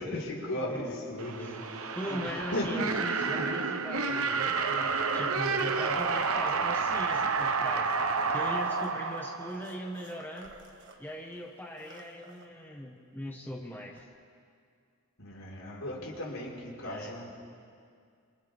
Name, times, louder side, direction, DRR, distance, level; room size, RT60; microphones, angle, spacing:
voice 1, 0.0-3.5 15.2-17.4, left 1 dB, 80° left, -3 dB, 5.1 m, -37 dB
voice 2, 0.7-1.0 1.4-1.6 1.9-10.6 11.0-14.1 16.8-17.1, left 1 dB, 10° left, -1 dB, 1.5 m, -40 dB
sound 1, 1.2-10.1, right 4 dB, 90° right, 1.1 m, -30 dB
sound 2, 4.9-6.6 7.3-11.0 11.3-11.4 11.7-12.5 14.0-14.1, right 3 dB, 55° right, 1.7 m, -51 dB
29.5 x 27.0 x 3.7 m, 2.3 s
head